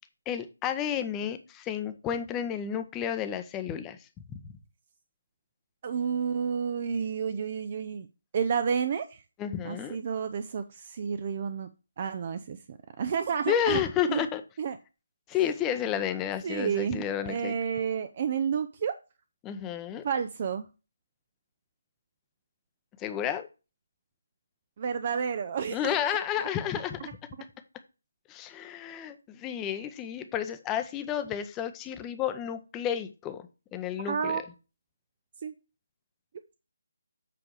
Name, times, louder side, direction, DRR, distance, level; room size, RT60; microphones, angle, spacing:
voice 1, 0.3-4.0 4.3-4.4 9.4-10.0 13.5-14.4 15.3-17.5 19.4-20.0 23.0-23.5 25.7-27.1 28.3-34.4, left 9 dB, 15° left, 0.7 m, -31 dB
voice 2, 5.8-8.1 8.3-9.2 9.6-11.7 12.0-13.8 14.1-14.3 14.6-14.8 16.4-18.9 20.0-20.7 24.8-25.9 34.1-34.4 35.4-35.5, right 7 dB, 35° right, 0.5 m, -30 dB
7.7 x 4.8 x 4.6 m
figure-of-eight pair, 150°, 0 cm